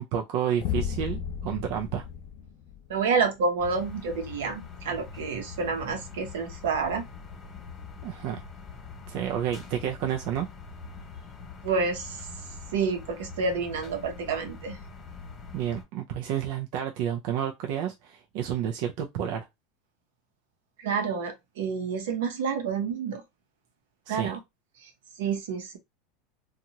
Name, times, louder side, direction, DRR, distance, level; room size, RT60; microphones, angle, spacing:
voice 1, 0.0-2.1 8.0-8.4 9.1-10.5 15.5-19.5 24.1-24.3, right 9 dB, 65° right, 0.5 m, -30 dB
sound 1, 0.6-3.2, left 9 dB, 55° left, 0.4 m, -33 dB
voice 2, 2.9-7.1 11.6-12.2 12.7-14.8 20.8-23.2 24.1-24.4 25.2-25.8, right 5 dB, 85° right, 0.8 m, -29 dB
sound 2, 3.6-15.8, left 4 dB, 30° left, 1.1 m, -44 dB
2.8 x 2.4 x 2.8 m
supercardioid pair, 125°, 0 cm